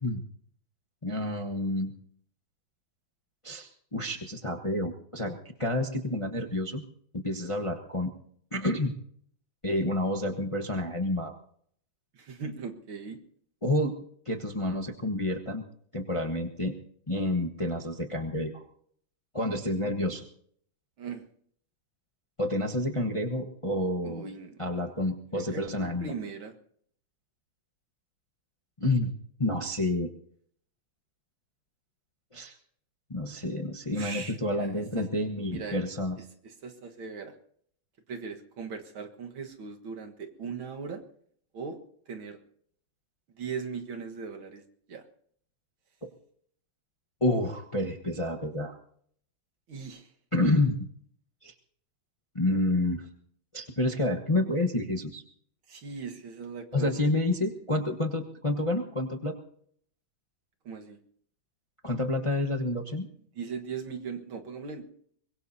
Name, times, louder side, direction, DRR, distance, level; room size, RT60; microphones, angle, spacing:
voice 1, 1.0-1.9 3.4-6.8 7.1-8.1 8.5-8.9 9.6-11.3 13.6-13.9 14.3-15.6 15.9-16.7 17.1-18.6 19.3-20.2 22.4-24.2 24.6-26.1 28.8-29.1 29.4-30.1 32.3-32.5 33.1-36.2 46.0-46.1 47.2-48.8 50.3-50.9 51.4-51.5 52.3-53.1 53.5-55.2 56.7-59.4 61.8-63.1, left 1 dB, 20° left, 2 dB, 0.8 m, -29 dB
voice 2, 12.1-13.2 21.0-21.2 24.0-24.9 25.3-26.5 34.0-35.1 35.5-35.8 36.4-37.4 38.1-41.0 41.5-41.8 42.1-42.4 43.3-44.6 44.9-45.0 49.7-50.1 55.7-57.1 60.6-61.0 63.3-64.8, right 5 dB, 70° right, 4 dB, 2.3 m, -39 dB
24.0 x 22.0 x 2.8 m, 0.63 s
omnidirectional pair, 2.3 m